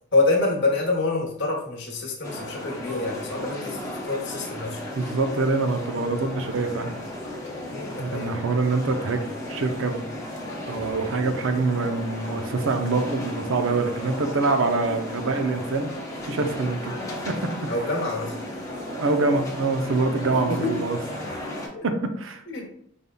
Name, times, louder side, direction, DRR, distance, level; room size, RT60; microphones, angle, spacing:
voice 1, 0.1-4.8 7.7-8.3 17.7-18.3 20.3-20.9 21.7-21.8 22.5-22.7, left 3 dB, 55° left, -2 dB, 1.0 m, -26 dB
sound 1, 2.2-21.7, left 1 dB, 15° left, 0.7 m, -35 dB
voice 2, 5.0-6.9 8.0-9.2 9.5-10.2 10.7-15.9 16.3-16.9 17.2-17.7 18.9-21.0 21.3-21.5 21.8-22.4, right 3 dB, 65° right, 6 dB, 0.6 m, -25 dB
5.3 x 3.5 x 2.3 m, 0.67 s
head